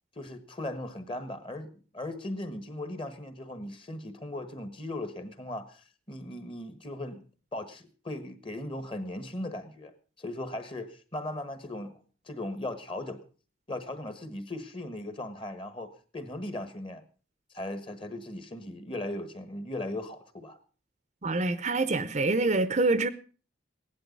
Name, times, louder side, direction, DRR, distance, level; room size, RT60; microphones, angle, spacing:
voice 1, 0.1-7.2 7.5-13.2 13.7-17.0 17.5-20.6, left 1 dB, 25° left, 1.4 m, -38 dB
voice 2, 21.2-23.1, right 2 dB, 35° right, 0.7 m, -26 dB
16.5 x 11.0 x 5.3 m
head